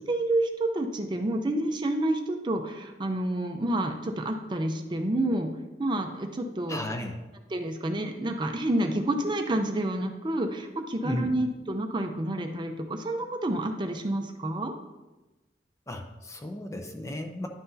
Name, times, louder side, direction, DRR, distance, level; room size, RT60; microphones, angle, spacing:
voice 1, 0.0-5.5 5.8-6.8 7.5-14.7, right 1 dB, 25° right, 5 dB, 0.5 m, -29 dB
voice 2, 6.7-7.2 11.0-11.4 15.9-17.5, left 1 dB, 20° left, 4 dB, 0.6 m, -34 dB
10.5 x 5.8 x 2.7 m, 1.1 s
head